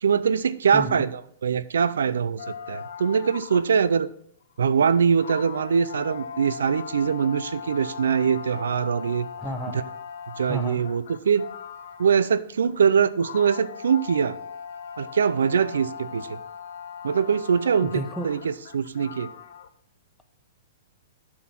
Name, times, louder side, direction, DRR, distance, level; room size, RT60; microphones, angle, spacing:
voice 1, 0.0-4.1 4.6-9.3 9.7-9.8 10.4-11.5 12.0-14.4 15.0-16.4 17.0-19.3, right 6 dB, 90° right, 16 dB, 0.5 m, -23 dB
voice 2, 0.7-1.1 9.4-9.8 10.5-10.8 17.8-18.3, right 1 dB, 5° left, 5 dB, 0.8 m, -32 dB
sound 1, 2.4-4.0 4.6-4.7 5.2-12.3 12.6-19.7, left 7 dB, 70° left, 0.7 m, -39 dB
7.6 x 6.2 x 5.9 m, 0.66 s
hypercardioid pair, 150°, 0 cm